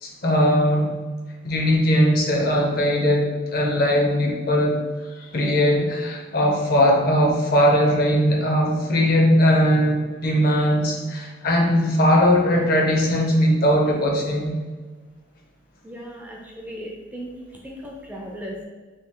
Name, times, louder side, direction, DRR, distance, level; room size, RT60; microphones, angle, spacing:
voice 1, 0.0-0.9 1.4-4.8 5.2-14.5, equal, 50° left, 0 dB, 0.6 m, -19 dB
voice 2, 15.8-17.3 17.6-18.7, equal, 10° right, -1 dB, 0.4 m, -36 dB
3.2 x 2.4 x 3.7 m, 1.3 s
head